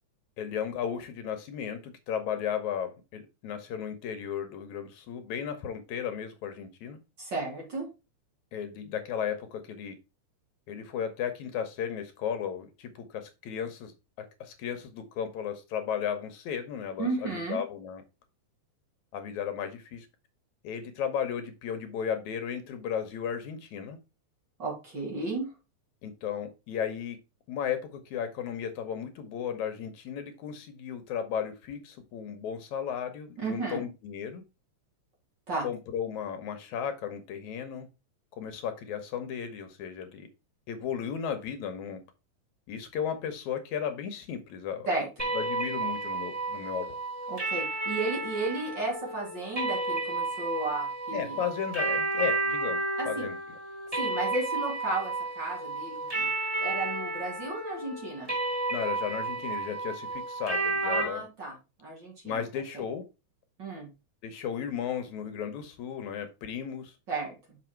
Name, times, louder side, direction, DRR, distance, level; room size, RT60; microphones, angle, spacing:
voice 1, 0.4-7.0 8.5-10.0 10.7-13.9 14.2-18.0 19.1-20.1 20.6-24.0 26.0-27.2 27.5-34.4 35.6-37.9 38.4-40.3 40.7-42.0 42.7-44.9 45.3-47.0 51.1-52.8 53.1-53.6 58.7-61.2 62.2-63.0 64.2-67.0, left 8 dB, 75° left, 2.2 m, -35 dB
voice 2, 7.2-7.9 17.0-17.6 24.6-25.5 33.4-33.8 35.5-35.7 44.9-45.1 47.3-51.4 53.0-53.3 54.0-56.3 56.6-58.3 60.8-61.5 61.8-62.4 63.6-63.9 67.1-67.6, right 3 dB, 35° right, 3.6 m, -34 dB
sound 1, 45.2-61.0, right 3 dB, 10° right, 4.2 m, -32 dB
6.0 x 5.7 x 4.5 m
omnidirectional pair, 3.5 m